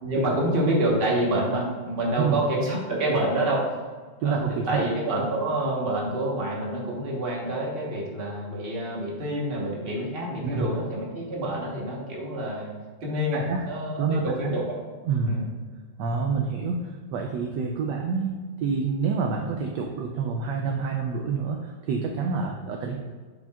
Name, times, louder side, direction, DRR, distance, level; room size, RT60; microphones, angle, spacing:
voice 1, 0.0-3.8 4.2-12.7 13.0-14.8 15.3-15.4, right 1 dB, 35° right, -3 dB, 1.3 m, -27 dB
voice 2, 4.2-4.9 5.2-5.3 10.4-10.7 13.3-13.7 14.0-14.5 15.1-15.4 16.0-23.0, right 5 dB, 75° right, 3 dB, 1.1 m, -28 dB
7.7 x 5.1 x 2.4 m, 1.5 s
omnidirectional pair, 2.1 m